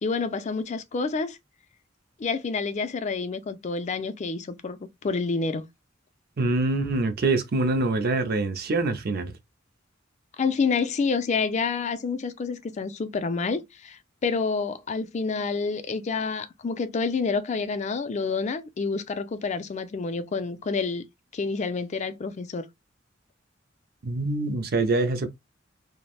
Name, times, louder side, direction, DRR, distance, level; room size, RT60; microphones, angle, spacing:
voice 1, 0.0-1.4 2.2-5.7 10.4-21.0 21.3-22.7, left 4 dB, 35° left, 0.4 m, -28 dB
voice 2, 6.4-9.3 24.0-25.3, right 2 dB, 55° right, 0.5 m, -25 dB
3.2 x 2.1 x 2.3 m
head